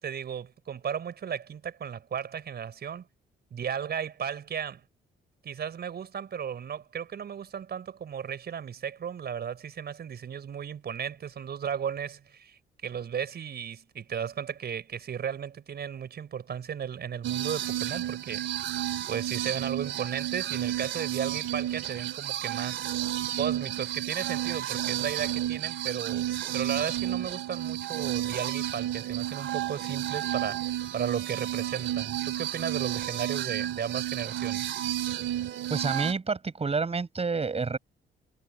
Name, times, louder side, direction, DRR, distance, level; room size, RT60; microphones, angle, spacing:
voice 1, 0.0-3.0 3.5-4.8 5.4-18.4 18.7-22.9 23.4-34.8, right 8 dB, 55° right, 5.0 m, -35 dB
sound 1, 17.2-36.1, right 12 dB, 70° right, 2.7 m, -31 dB
voice 2, 35.7-37.8, right 4 dB, 30° right, 7.2 m, -29 dB
cardioid pair, 90°, 20 cm